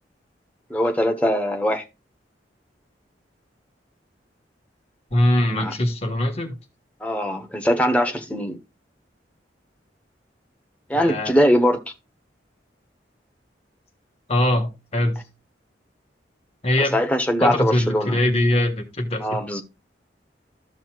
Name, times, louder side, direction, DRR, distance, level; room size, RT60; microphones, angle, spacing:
voice 1, 0.7-1.8 5.6-5.7 7.0-8.6 10.9-11.8 16.9-18.2 19.2-19.6, equal, 10° left, 1.0 m, -21 dB
voice 2, 5.1-6.6 10.9-11.3 14.3-15.2 16.6-16.9 17.4-19.4, left 1 dB, 35° left, 1.5 m, -22 dB
14.0 x 5.5 x 2.4 m
head